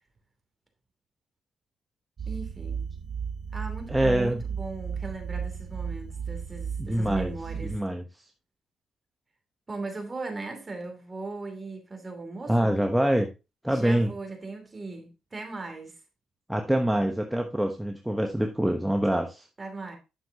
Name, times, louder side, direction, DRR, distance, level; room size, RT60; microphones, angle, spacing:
voice 1, 2.2-2.9 3.5-7.8 9.7-12.7 13.7-15.9 19.6-20.0, right 3 dB, 25° right, 2.8 m, -38 dB
sound 1, 2.2-7.8, right 6 dB, 50° right, 0.9 m, -34 dB
voice 2, 3.9-4.4 6.8-7.3 7.6-8.0 12.5-13.3 13.6-14.1 16.5-19.5, right 1 dB, 5° right, 1.0 m, -25 dB
9.6 x 7.0 x 2.8 m
cardioid pair, 90°, 0 cm